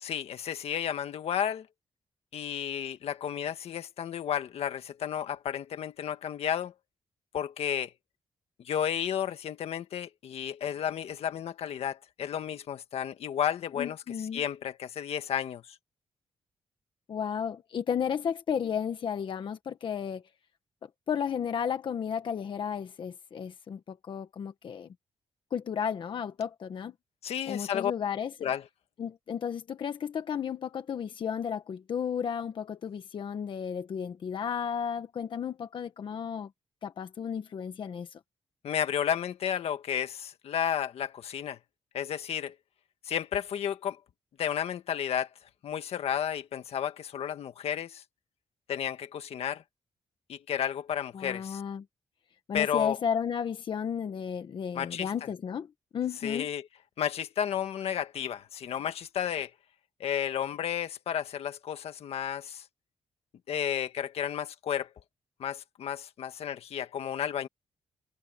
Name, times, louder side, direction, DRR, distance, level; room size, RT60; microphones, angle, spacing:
voice 1, 0.0-1.7 2.3-6.7 7.3-7.9 8.6-14.0 14.3-15.6 27.2-27.9 28.4-28.6 38.6-41.6 41.9-42.5 43.0-44.0 44.4-45.3 45.6-48.0 48.7-49.6 50.3-51.6 52.5-53.0 54.7-55.1 56.2-56.7 57.0-59.5 60.0-62.6 63.5-64.9 65.4-67.5, left 9 dB, 70° left, 1.6 m, -32 dB
voice 2, 13.8-14.4 17.1-20.2 20.8-24.9 25.5-26.9 27.5-28.3 29.0-36.5 36.8-38.2 51.1-51.8 52.5-56.5, left 7 dB, 50° left, 1.3 m, -33 dB
wide cardioid pair, 165°, 11 cm